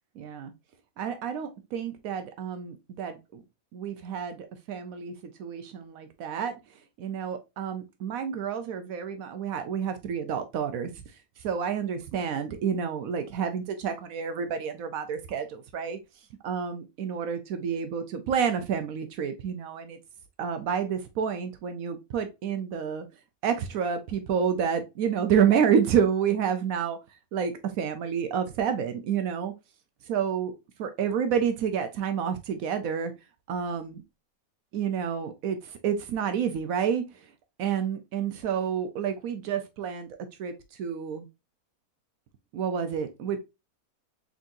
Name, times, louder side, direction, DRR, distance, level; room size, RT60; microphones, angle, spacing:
voice 1, 0.2-0.5 1.0-3.4 3.7-5.1 5.4-6.5 7.0-10.9 11.4-16.0 16.4-20.0 20.4-23.0 23.4-27.0 27.3-29.5 30.1-30.5 30.8-33.1 33.5-34.0 34.7-37.3 37.6-40.1 40.4-40.5 40.8-41.3 42.5-43.4, right 7 dB, 75° right, 1.0 m, -29 dB
3.9 x 3.5 x 2.5 m
omnidirectional pair, 1.5 m